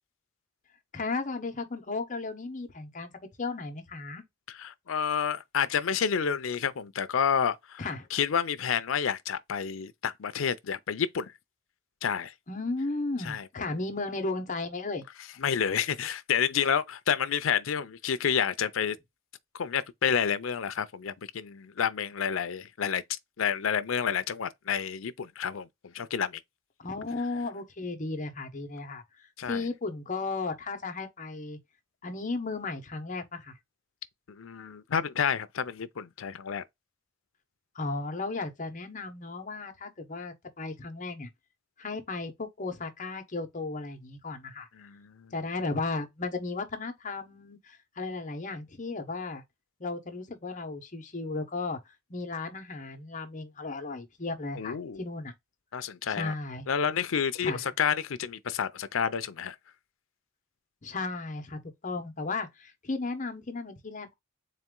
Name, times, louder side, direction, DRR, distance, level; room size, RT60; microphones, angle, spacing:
voice 1, 0.9-3.1 3.4-4.2 7.8-8.1 12.5-15.0 26.8-29.0 29.4-31.6 32.0-33.5 37.7-41.3 41.8-44.7 45.3-49.4 49.8-51.8 52.1-55.3 56.1-56.6 57.4-57.6 60.8-64.1, left 3 dB, 40° left, 1.0 m, -35 dB
voice 2, 4.5-11.3 12.0-12.3 13.2-13.5 15.4-19.0 19.5-23.0 23.4-26.4 29.4-29.6 34.3-36.6 44.8-45.3 54.6-55.0 55.7-56.3 56.7-59.6, left 7 dB, 85° left, 0.5 m, -29 dB
4.2 x 2.5 x 3.7 m
head